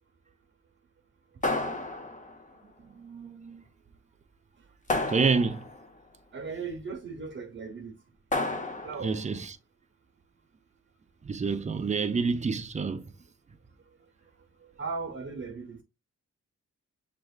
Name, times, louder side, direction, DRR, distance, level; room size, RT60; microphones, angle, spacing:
sound 1, 1.4-2.5 4.9-5.9 8.3-9.2, left 2 dB, 25° left, 0.8 m, -31 dB
voice 1, 2.8-3.6 5.1-5.6 9.0-9.6 11.2-13.1, right 4 dB, 25° right, 0.4 m, -28 dB
voice 2, 6.3-7.9 8.8-9.2 14.8-15.8, right 4 dB, 40° right, 1.0 m, -37 dB
7.5 x 2.9 x 2.4 m
wide cardioid pair, 150°, 29 cm